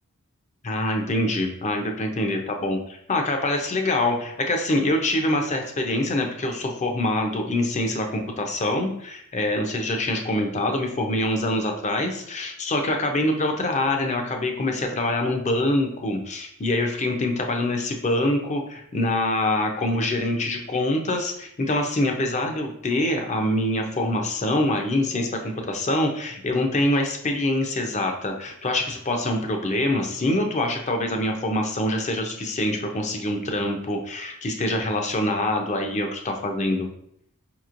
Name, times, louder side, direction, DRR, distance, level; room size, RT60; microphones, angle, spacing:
voice 1, 0.6-36.9, left 1 dB, 30° left, 3 dB, 0.6 m, -25 dB
5.0 x 3.0 x 2.5 m, 0.71 s
head